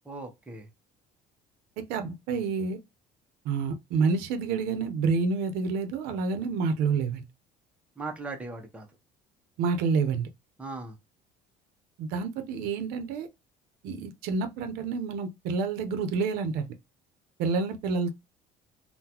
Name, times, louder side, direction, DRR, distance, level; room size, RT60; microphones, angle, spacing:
voice 1, 0.0-0.7 8.0-8.9 10.6-11.0, right 3 dB, 10° right, 0.7 m, -38 dB
voice 2, 1.8-2.8 3.4-7.2 9.6-10.3 12.0-13.3 13.8-16.7 17.4-18.1, right 4 dB, 85° right, 0.7 m, -28 dB
3.8 x 2.1 x 2.9 m
cardioid pair, 150°, 16 cm